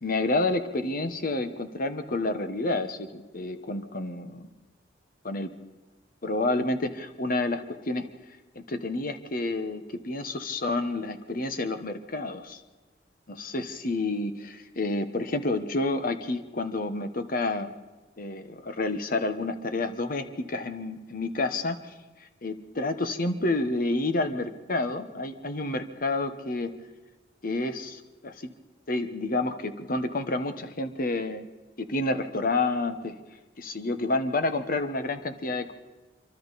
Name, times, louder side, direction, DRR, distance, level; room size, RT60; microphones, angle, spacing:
voice 1, 0.0-4.5 5.2-5.5 6.2-8.1 8.5-12.6 13.3-17.7 18.2-21.8 22.4-26.7 27.4-28.5 28.9-31.4 31.8-33.2 33.6-35.7, left 2 dB, 50° left, 9 dB, 1.3 m, -29 dB
26.0 x 24.0 x 4.2 m, 1.2 s
head